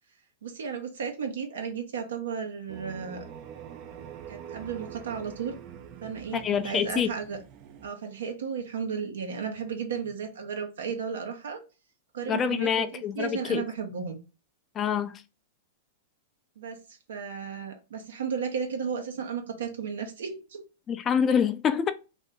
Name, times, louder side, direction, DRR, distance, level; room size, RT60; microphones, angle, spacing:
voice 1, 0.4-3.2 4.3-5.5 6.0-7.4 7.8-11.6 12.1-14.2 16.6-20.6, right 6 dB, 80° right, 0.9 m, -34 dB
sound 1, 2.7-7.9, right 9 dB, 45° right, 0.5 m, -45 dB
voice 2, 6.3-7.1 12.2-13.6 14.7-15.2 20.9-21.9, left 7 dB, 30° left, 0.4 m, -26 dB
2.7 x 2.7 x 3.4 m
hypercardioid pair, 110°, 0 cm